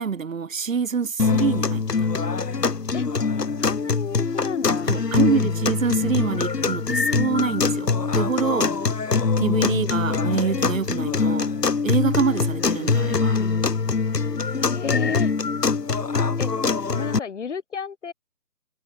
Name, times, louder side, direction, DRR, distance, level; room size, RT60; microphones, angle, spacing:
voice 1, 0.0-2.1 4.9-8.7 9.4-11.5 11.8-13.4, right 6 dB, 55° right, 1.8 m, -26 dB
sound 1, 1.2-17.2, left 4 dB, 80° left, 1.9 m, -23 dB
voice 2, 3.6-4.9 14.6-15.3 16.4-16.5 16.9-18.1, left 6 dB, 50° left, 3.4 m, -31 dB
figure-of-eight pair, 155°, 47 cm